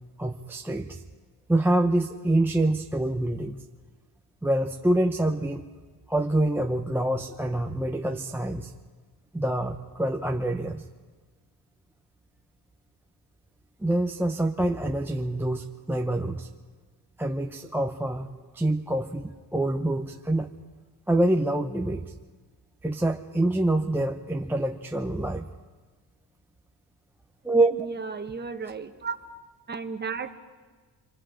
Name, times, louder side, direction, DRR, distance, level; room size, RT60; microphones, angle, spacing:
voice 1, 0.2-1.0 1.5-3.6 4.4-5.6 6.1-8.7 9.3-10.8 13.8-16.5 17.2-20.5 21.1-22.0 22.8-25.5 27.4-27.7, right 1 dB, 5° right, 2 dB, 0.6 m, -26 dB
voice 2, 27.7-29.1 29.7-30.3, right 5 dB, 25° right, 6 dB, 1.2 m, -34 dB
28.0 x 23.0 x 5.0 m, 1.4 s
cardioid pair, 140°, 40 cm